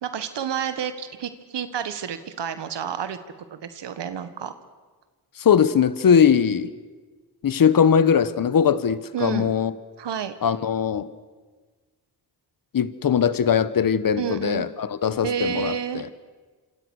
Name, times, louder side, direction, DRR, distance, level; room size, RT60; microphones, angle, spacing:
voice 1, 0.0-3.2 3.5-4.5 9.1-9.5 10.0-10.3 14.2-14.7 15.2-16.1, right 8 dB, 70° right, 1.7 m, -30 dB
voice 2, 5.4-6.7 7.4-9.7 10.4-11.1 12.7-16.1, left 7 dB, 50° left, 1.3 m, -20 dB
27.0 x 27.0 x 6.5 m
cardioid pair, 90°, 43 cm